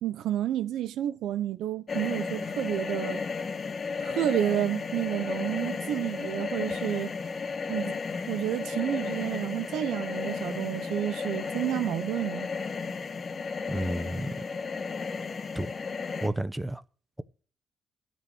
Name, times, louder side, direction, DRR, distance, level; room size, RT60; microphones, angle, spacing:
voice 1, 0.0-3.2 4.0-7.1 7.7-8.0 8.3-12.5, right 12 dB, 85° right, 0.7 m, -30 dB
sound 1, 1.9-16.3, left 5 dB, 40° left, 1.4 m, -34 dB
voice 2, 13.7-14.3 15.5-15.7 16.2-16.8, right 1 dB, 10° right, 0.9 m, -31 dB
12.5 x 7.2 x 7.7 m
cardioid pair, 100°, 0 cm